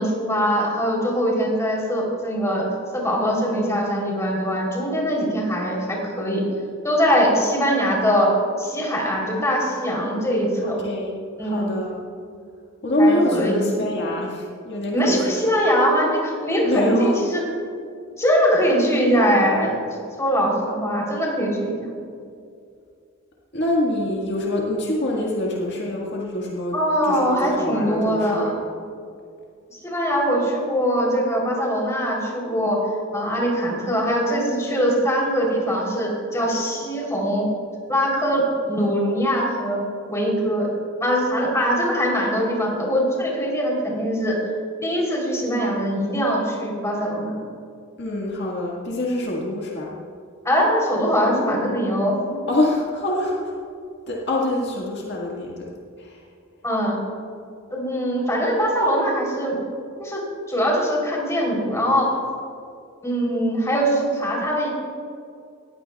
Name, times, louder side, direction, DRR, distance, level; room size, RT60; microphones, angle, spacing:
voice 1, 0.0-2.6 2.9-6.4 6.8-8.3 8.6-10.7 11.4-11.7 13.0-13.6 14.9-17.4 18.2-19.7 20.2-21.9 26.7-28.5 29.7-32.8 33.1-37.5 37.9-39.8 40.1-40.7 41.0-44.3 44.8-47.4 50.4-52.4 56.6-57.0 57.7-59.6 60.0-60.2 60.5-62.1 63.0-64.7, equal, 15° left, -3 dB, 3.4 m, -22 dB
voice 2, 7.2-7.5 10.6-12.0 12.8-15.3 16.6-17.2 23.5-26.8 27.1-28.6 48.0-49.9 51.2-51.4 52.5-53.5 54.1-55.7 56.0-56.2, left 1 dB, 55° left, -3 dB, 1.7 m, -25 dB
19.5 x 15.0 x 2.3 m, 2.4 s
head